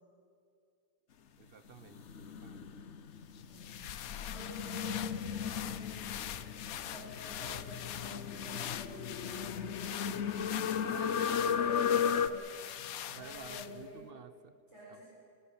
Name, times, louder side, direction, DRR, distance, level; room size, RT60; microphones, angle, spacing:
voice 1, 1.4-2.7 10.8-11.6 11.9-12.0 13.1-14.6 14.9-15.0, right 6 dB, 45° right, 11 dB, 1.2 m, -51 dB
sound 1, 1.8-12.3, left 8 dB, 55° left, 1.1 m, -35 dB
sound 2, 3.3-14.0, left 10 dB, 80° left, 1.2 m, -43 dB
voice 2, 3.3-3.9 4.2-6.1 6.8-10.4 11.1-12.5 13.1-14.1 14.7-15.0, right 1 dB, 20° right, -8 dB, 7.3 m, -49 dB
27.5 x 16.0 x 8.7 m, 2.4 s
omnidirectional pair, 1.5 m